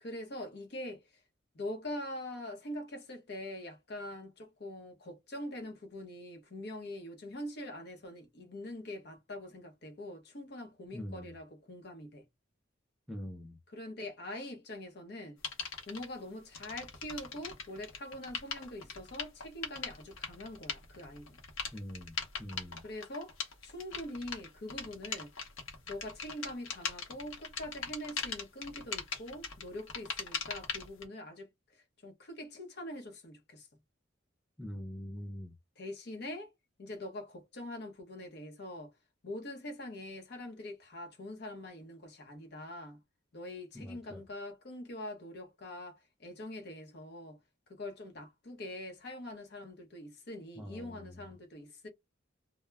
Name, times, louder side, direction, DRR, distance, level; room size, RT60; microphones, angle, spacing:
voice 1, 0.0-1.0 1.5-12.2 13.7-15.4 15.9-21.4 22.8-23.3 23.6-25.3 25.9-31.5 32.0-33.7 35.8-36.5 36.8-38.9 39.2-43.0 43.3-47.4 47.7-51.9, left 1 dB, 55° left, 0.7 m, -44 dB
voice 2, 10.9-11.4 13.1-13.6 21.7-22.8 34.6-35.5 43.7-44.2 50.6-51.3, equal, ahead, 0.3 m, -44 dB
sound 1, 15.4-16.1 16.5-31.0, left 5 dB, 90° left, 0.8 m, -40 dB
2.2 x 2.0 x 3.2 m
head